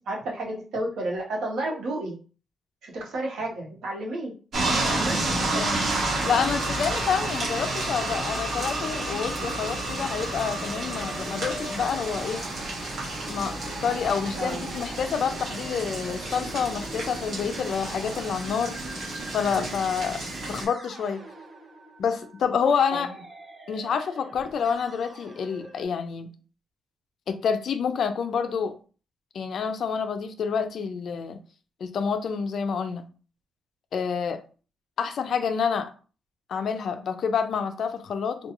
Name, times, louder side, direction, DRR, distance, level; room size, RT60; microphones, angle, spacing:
voice 1, 0.1-2.2 2.8-4.3 4.9-5.2 14.3-14.7 23.0-23.1, right 1 dB, 80° right, 0.9 m, -31 dB
sound 1, 4.5-20.6, right 2 dB, 55° right, 1.0 m, -30 dB
voice 2, 5.5-5.8 6.2-12.5 13.3-18.8 19.3-20.2 20.5-21.2 22.0-23.1 23.7-26.3 27.3-28.7 29.3-31.4 31.8-33.1 33.9-34.4 35.0-35.9 36.5-38.5, left 6 dB, 60° left, 0.3 m, -28 dB
Musical instrument, 7.9-25.9, right 1 dB, 25° right, 0.6 m, -45 dB
2.3 x 2.2 x 2.9 m
cardioid pair, 135°, 0 cm